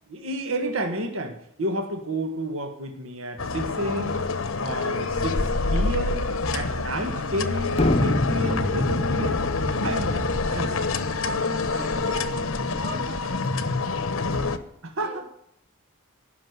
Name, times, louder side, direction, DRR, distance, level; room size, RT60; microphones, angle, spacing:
voice 1, 0.1-4.2 4.6-5.4 5.7-9.5 9.8-10.8 14.8-15.2, right 1 dB, 75° right, 4 dB, 1.7 m, -31 dB
sound 1, 3.4-14.6, left 3 dB, 75° left, 1.0 m, -27 dB
sound 2, 7.7-11.4, left 1 dB, 30° left, 0.8 m, -26 dB
voice 2, 11.7-14.5 15.0-15.2, right 1 dB, 50° right, -2 dB, 4.9 m, -43 dB
16.0 x 6.4 x 9.6 m, 0.74 s
head